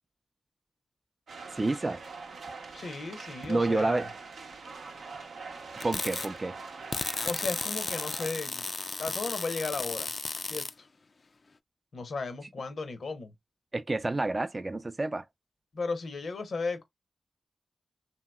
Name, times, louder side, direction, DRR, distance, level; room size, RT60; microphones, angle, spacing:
sound 1, 1.3-8.3, right 4 dB, 85° right, 0.6 m, -43 dB
voice 1, 1.5-2.0 3.5-4.1 5.8-6.6 13.7-15.2, right 2 dB, 35° right, 0.4 m, -29 dB
voice 2, 2.7-4.1 7.2-8.7 9.0-10.1 10.5-10.9 11.9-13.3 15.7-16.8, left 4 dB, 75° left, 0.8 m, -35 dB
sound 2, 5.8-6.3 6.9-10.7, left 3 dB, 55° left, 0.3 m, -34 dB
2.8 x 2.8 x 2.2 m
cardioid pair, 40°, 0 cm